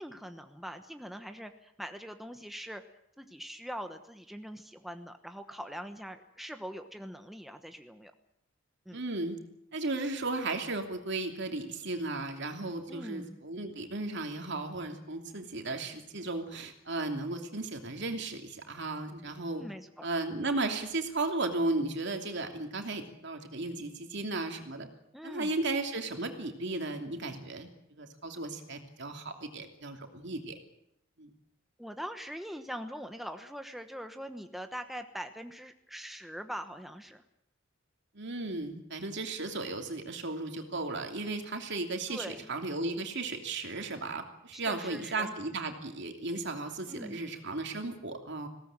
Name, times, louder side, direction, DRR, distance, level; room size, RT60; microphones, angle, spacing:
voice 1, 0.0-2.8 3.2-8.1 8.9-9.0 12.9-13.4 19.5-20.1 25.1-25.5 31.8-37.2 42.1-42.5 44.6-45.3 46.9-47.2, equal, ahead, 6 dB, 1.1 m, -42 dB
voice 2, 8.9-9.4 9.7-19.6 20.0-24.9 25.2-30.6 31.2-31.3 38.1-48.5, right 2 dB, 60° right, 5 dB, 2.9 m, -35 dB
21.0 x 17.5 x 9.0 m, 0.78 s
head